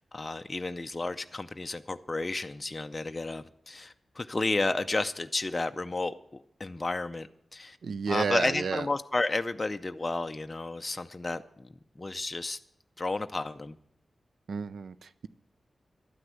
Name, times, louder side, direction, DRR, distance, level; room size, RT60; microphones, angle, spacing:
voice 1, 0.0-7.8 8.1-11.7 12.0-12.6 13.0-13.8, left 2 dB, 25° left, 0.5 m, -32 dB
voice 2, 7.8-8.9 14.5-15.3, right 5 dB, 85° right, 0.5 m, -31 dB
12.0 x 9.7 x 8.2 m
wide cardioid pair, 145°, 0 cm